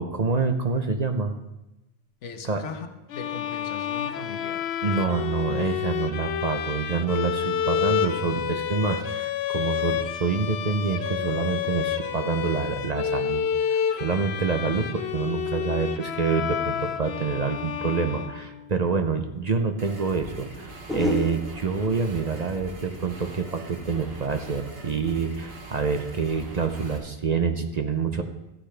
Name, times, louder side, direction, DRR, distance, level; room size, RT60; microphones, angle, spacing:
voice 1, 0.0-1.3 2.4-2.6 4.8-28.2, right 5 dB, 45° right, 6 dB, 0.7 m, -27 dB
voice 2, 2.2-4.7, left 5 dB, 90° left, 8 dB, 1.2 m, -39 dB
sound 1, 3.1-18.8, left 9 dB, 65° left, 0.9 m, -29 dB
sound 2, 19.5-19.6 20.9-24.0 24.3-24.7, left 1 dB, ahead, 3.2 m, -34 dB
sound 3, 19.8-27.0, right 3 dB, 60° right, 1.6 m, -43 dB
13.5 x 9.8 x 3.3 m, 0.97 s
omnidirectional pair, 1.2 m